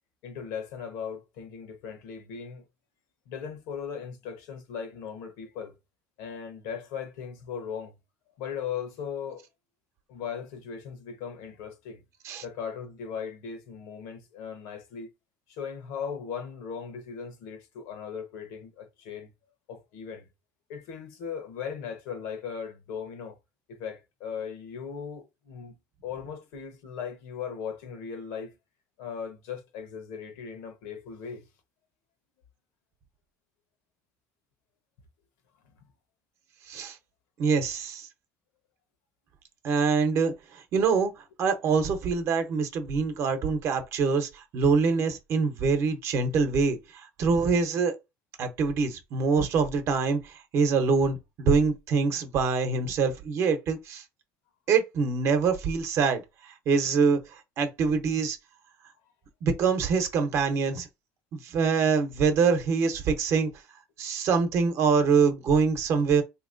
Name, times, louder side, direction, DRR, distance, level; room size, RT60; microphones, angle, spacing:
voice 1, 0.2-2.6 3.3-5.8 6.2-8.0 8.4-9.5 10.1-12.0 12.4-15.1 15.5-19.3 19.7-20.3 20.7-23.4 23.7-25.8 26.0-28.5 29.0-31.5, left 7 dB, 85° left, 1.1 m, -38 dB
voice 2, 36.7-37.0 37.4-38.1 39.6-47.9 48.4-54.0 54.7-58.4 59.4-60.9 61.3-63.5 64.0-66.2, right 5 dB, 50° right, 0.8 m, -25 dB
3.6 x 2.9 x 2.6 m
cardioid pair, 150°, 6 cm